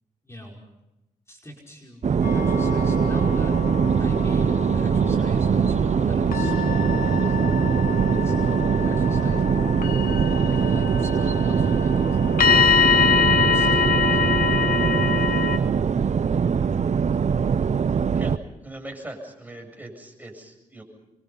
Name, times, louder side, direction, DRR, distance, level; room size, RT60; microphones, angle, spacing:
voice 1, 0.2-0.6 1.3-3.6 4.0-8.4 8.8-10.1 10.5-12.7 13.4-14.3, equal, 20° left, -1 dB, 5.3 m, -44 dB
sound 1, 2.0-18.4, right 6 dB, 55° right, 0.9 m, -22 dB
sound 2, 2.2-15.6, left 7 dB, 90° left, 1.5 m, -25 dB
voice 2, 18.6-20.8, right 1 dB, 10° right, 3 dB, 7.7 m, -40 dB
27.5 x 24.5 x 5.7 m, 0.91 s
cardioid pair, 75°, 14 cm